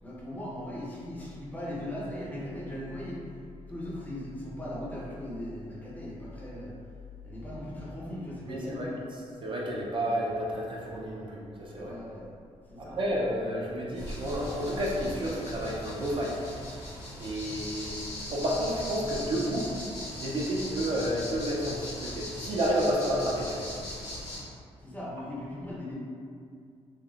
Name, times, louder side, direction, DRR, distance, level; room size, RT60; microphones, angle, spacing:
voice 1, 0.0-3.4 3.7-6.7 7.2-9.0 11.8-12.3 12.7-13.0 24.8-25.9, left 1 dB, 15° left, -6 dB, 0.5 m, -38 dB
voice 2, 8.5-8.9 9.4-12.0 12.8-16.4 17.2-18.0 18.3-19.7 20.1-23.7, equal, 45° right, -4 dB, 0.4 m, -30 dB
sound 1, 14.0-24.4, left 1 dB, 75° left, 0.9 m, -39 dB
3.2 x 2.0 x 2.3 m, 2.3 s
wide cardioid pair, 150°, 12 cm